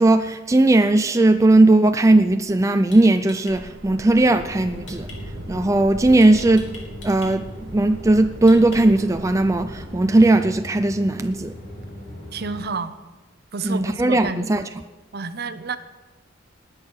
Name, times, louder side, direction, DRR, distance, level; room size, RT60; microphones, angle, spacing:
voice 1, 0.0-5.1 5.5-6.7 7.0-11.5 13.6-14.7, right 2 dB, 15° right, 0.4 m, -17 dB
sound 1, 2.9-3.6 4.9-5.2 6.2-7.3 8.5-9.1, left 4 dB, 65° left, 3.5 m, -41 dB
sound 2, 3.5-10.0, right 2 dB, 85° right, 1.0 m, -40 dB
sound 3, 4.2-12.6, equal, 45° left, 4.5 m, -38 dB
voice 2, 12.3-12.9 13.5-14.5 15.1-15.8, right 4 dB, 55° right, 0.9 m, -29 dB
19.5 x 8.7 x 6.5 m
head